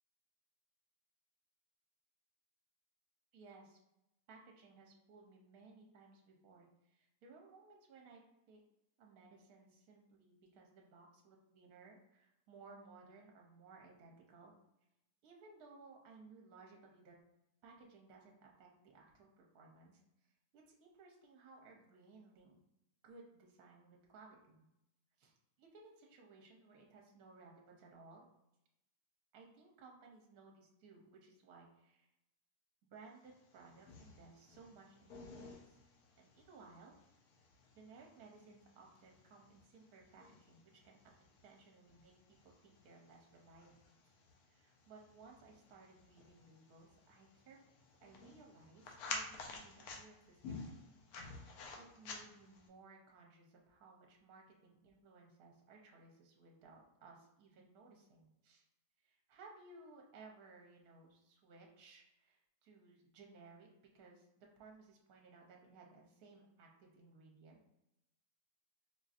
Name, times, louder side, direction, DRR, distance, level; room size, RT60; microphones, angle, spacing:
voice 1, 3.3-3.8 4.3-8.2 8.5-8.6 9.0-14.5 15.2-17.1 17.6-20.0 20.5-22.6 23.0-24.7 25.2-28.2 29.3-32.1 32.9-35.8 36.2-36.9 37.8-43.7 44.0-44.1 44.5-47.6 48.0-50.8 51.1-58.6 59.0-67.6, right 3 dB, 70° right, 0 dB, 1.2 m, -60 dB
sound 1, 33.3-52.7, left 4 dB, 75° left, 1.1 m, -52 dB
4.3 x 2.5 x 2.4 m, 0.85 s
omnidirectional pair, 1.7 m